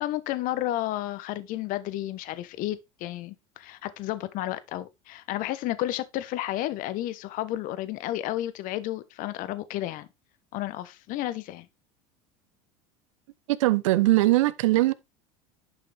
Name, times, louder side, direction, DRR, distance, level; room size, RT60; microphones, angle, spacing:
voice 1, 0.0-10.1 10.5-11.7, left 14 dB, 55° left, 1.1 m, -32 dB
voice 2, 13.5-14.9, right 18 dB, 75° right, 0.8 m, -21 dB
11.0 x 5.7 x 3.5 m
hypercardioid pair, 85°, 17 cm